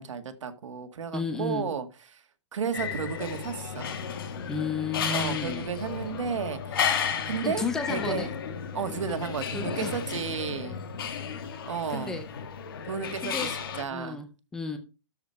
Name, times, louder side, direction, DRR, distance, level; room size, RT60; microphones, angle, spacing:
voice 1, 0.0-1.9 2.1-2.2 2.5-4.0 5.1-8.4 8.7-10.8 11.7-12.2 12.8-14.2, right 6 dB, 85° right, 9 dB, 1.9 m, -33 dB
voice 2, 1.1-1.7 4.5-5.7 7.4-8.3 9.5-9.9 11.9-12.2 13.2-13.5 13.9-14.3 14.5-14.8, left 4 dB, 5° left, 9 dB, 0.4 m, -32 dB
sound 1, 2.7-13.8, left 7 dB, 50° left, 1.8 m, -33 dB
13.0 x 5.0 x 5.7 m, 0.32 s
hypercardioid pair, 180°, 16 cm